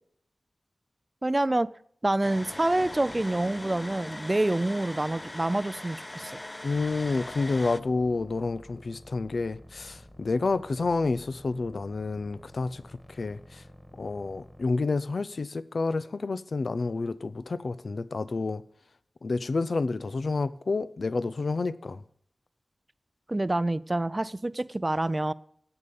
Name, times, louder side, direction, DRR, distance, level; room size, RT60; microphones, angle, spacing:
voice 1, 1.2-1.7 2.0-6.3 23.3-25.3, right 2 dB, 25° right, 0.4 m, -27 dB
sound 1, 2.2-7.8, left 1 dB, 20° left, 0.5 m, -40 dB
voice 2, 6.6-12.8 13.1-13.6 14.0-18.6 19.2-22.0, left 3 dB, 70° left, 0.5 m, -29 dB
sound 2, 6.7-14.6, equal, 5° left, 1.7 m, -51 dB
11.0 x 8.7 x 5.3 m
wide cardioid pair, 75°, 0 cm